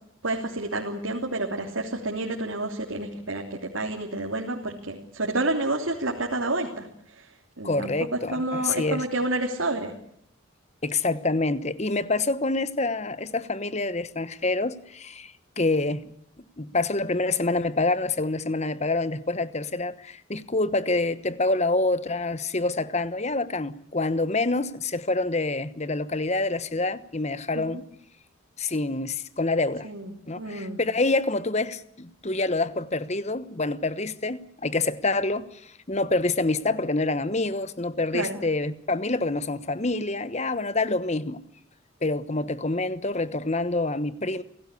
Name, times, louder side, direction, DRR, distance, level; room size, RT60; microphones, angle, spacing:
voice 1, 0.2-7.3 7.6-9.9 27.5-27.8 29.8-30.8 38.1-38.4, right 2 dB, 75° right, 3.2 m, -29 dB
voice 2, 7.6-9.0 10.8-16.1 16.6-27.8 28.6-29.9 30.3-41.4 42.0-44.4, left 2 dB, 35° left, 1.1 m, -27 dB
28.0 x 18.0 x 8.4 m
head